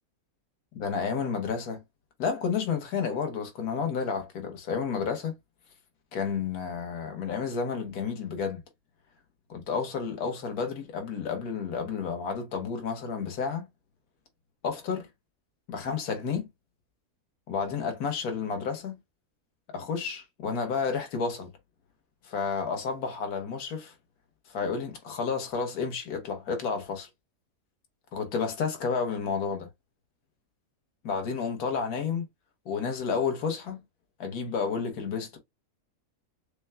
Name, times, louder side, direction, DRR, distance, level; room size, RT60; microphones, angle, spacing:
voice 1, 0.8-1.8 2.2-5.3 6.1-8.6 9.5-13.7 14.6-15.1 15.7-16.5 17.5-19.0 19.7-21.5 22.2-23.9 24.5-27.1 28.1-29.7 31.0-32.3 32.6-33.8 34.2-35.4, left 5 dB, 70° left, 1.5 m, -31 dB
6.7 x 2.2 x 2.2 m
omnidirectional pair, 1.7 m